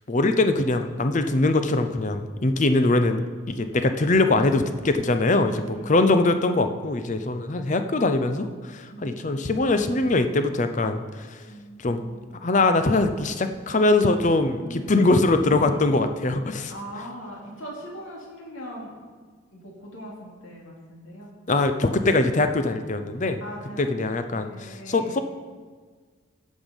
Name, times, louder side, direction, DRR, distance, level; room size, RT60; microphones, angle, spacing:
voice 1, 0.1-11.4 11.8-12.0 12.4-16.7 21.5-23.4 23.8-25.2, left 2 dB, 35° left, 8 dB, 0.6 m, -22 dB
voice 2, 5.7-6.1 8.9-9.7 11.5-12.4 14.6-15.1 15.6-16.1 16.7-18.9 19.5-21.3 23.4-25.2, equal, 75° left, -3 dB, 2.8 m, -41 dB
13.0 x 7.3 x 5.2 m, 1.5 s
head